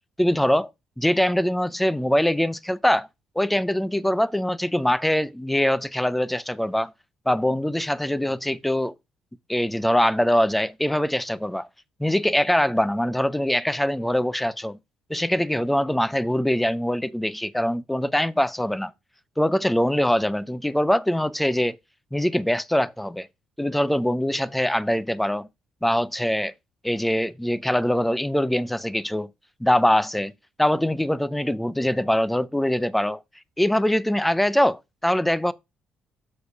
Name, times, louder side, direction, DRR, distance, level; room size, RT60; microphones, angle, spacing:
voice 1, 0.2-0.7 1.0-3.1 3.4-6.9 7.3-8.9 9.5-11.7 12.0-14.8 15.1-18.9 19.4-21.8 22.1-23.3 23.6-25.5 25.8-26.5 26.8-29.3 29.6-30.3 30.6-33.2 33.6-35.5, left 1 dB, 5° left, 0.4 m, -23 dB
6.6 x 4.8 x 5.0 m
cardioid pair, 135°, 3 cm